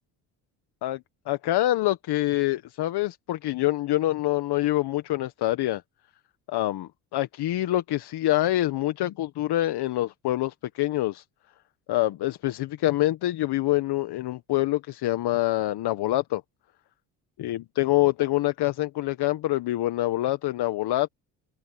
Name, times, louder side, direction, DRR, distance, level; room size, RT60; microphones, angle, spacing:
voice 1, 1.3-5.8 6.5-11.2 11.9-16.4 17.4-21.1, left 16 dB, 65° left, 1.4 m, -26 dB
supercardioid pair, 70°, 43 cm